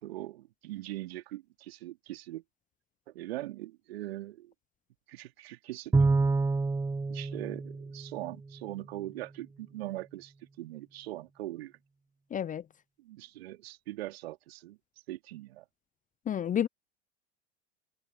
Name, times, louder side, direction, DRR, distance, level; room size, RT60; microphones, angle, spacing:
voice 1, 0.0-2.4 3.1-4.5 5.1-5.9 7.1-11.7 13.0-14.8 15.1-15.6, right 16 dB, 65° right, 3.4 m, -41 dB
Bowed string instrument, 5.9-8.6, right 3 dB, 10° right, 1.3 m, -28 dB
voice 2, 12.3-12.6 16.3-16.7, left 9 dB, 25° left, 0.9 m, -30 dB
figure-of-eight pair, 80°, 34 cm